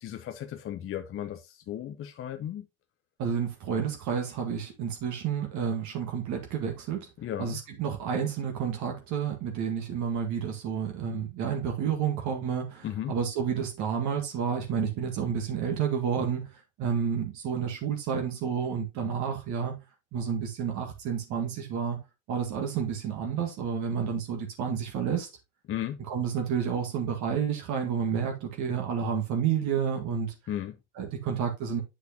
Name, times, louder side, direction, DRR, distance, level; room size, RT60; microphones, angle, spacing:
voice 1, 0.0-2.7 7.2-7.6 12.8-13.1 25.7-26.0 30.5-30.8, left 11 dB, 40° left, 0.8 m, -35 dB
voice 2, 3.2-7.1 7.4-16.5 16.8-19.8 20.1-22.0 22.3-25.3 26.1-30.3 31.0-31.8, right 7 dB, 55° right, 1.9 m, -30 dB
8.2 x 6.2 x 2.9 m
hypercardioid pair, 75°, 35 cm